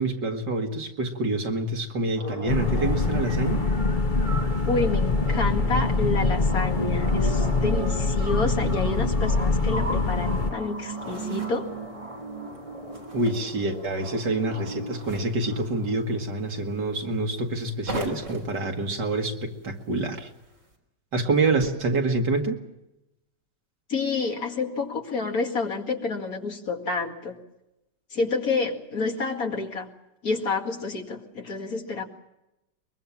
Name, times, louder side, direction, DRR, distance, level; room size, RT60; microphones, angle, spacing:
voice 1, 0.0-3.6 13.1-20.3 21.1-22.6, right 2 dB, 75° right, 3 dB, 2.8 m, -27 dB
sound 1, 2.2-16.1, right 2 dB, 20° right, 4.5 m, -37 dB
sound 2, 2.5-10.5, left 3 dB, 35° left, 1.0 m, -24 dB
voice 2, 4.7-11.7 23.9-27.4 28.1-29.9 30.2-32.0, left 3 dB, 55° left, 3 dB, 2.6 m, -29 dB
sound 3, 10.4-20.8, right 1 dB, 45° right, 4.1 m, -43 dB
23.0 x 22.5 x 7.2 m, 0.91 s
omnidirectional pair, 1.9 m